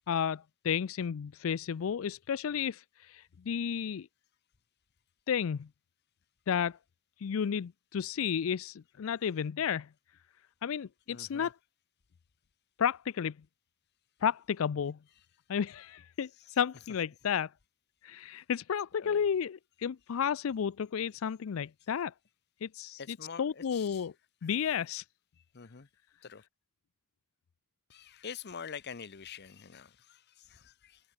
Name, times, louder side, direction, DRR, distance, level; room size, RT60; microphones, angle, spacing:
voice 1, 0.1-4.1 5.3-5.7 6.5-6.8 7.2-9.9 10.6-11.5 12.8-13.3 14.2-15.0 15.5-17.5 18.0-22.1 22.6-24.1 24.4-25.0, left 7 dB, 70° left, 0.4 m, -32 dB
voice 2, 11.1-11.5 19.0-19.2 23.0-24.1 24.4-24.5 25.5-25.9 26.2-26.4 27.9-31.0, left 6 dB, 50° left, 0.8 m, -46 dB
open air
head